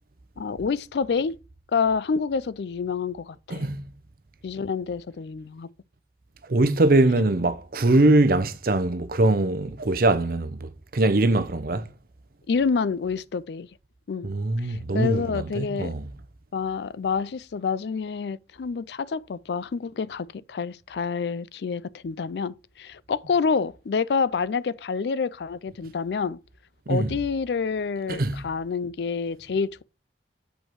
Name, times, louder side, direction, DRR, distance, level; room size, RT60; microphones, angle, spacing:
voice 1, 0.4-1.4 1.7-3.6 4.4-5.7 12.5-13.7 14.1-14.3 14.6-15.9 16.5-26.4 26.9-29.8, left 5 dB, 70° left, 0.4 m, -28 dB
voice 2, 3.5-3.8 6.5-11.9 14.2-16.1 26.9-27.1 28.1-28.4, right 2 dB, 55° right, 0.7 m, -22 dB
7.7 x 5.2 x 4.6 m
head